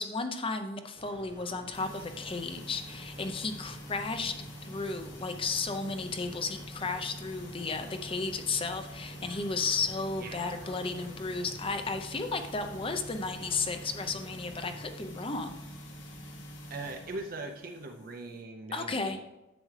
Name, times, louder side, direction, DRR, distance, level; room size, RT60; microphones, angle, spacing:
voice 1, 0.0-4.4 4.7-15.6 18.7-19.2, left 4 dB, 30° left, 7 dB, 0.7 m, -34 dB
sound 1, 0.9-14.8, right 1 dB, 25° right, 1.1 m, -52 dB
sound 2, 1.7-18.4, equal, 70° left, 1.3 m, -46 dB
voice 2, 10.2-10.7 16.7-19.2, right 2 dB, 50° right, 3 dB, 0.6 m, -41 dB
10.0 x 7.6 x 3.3 m, 0.99 s
head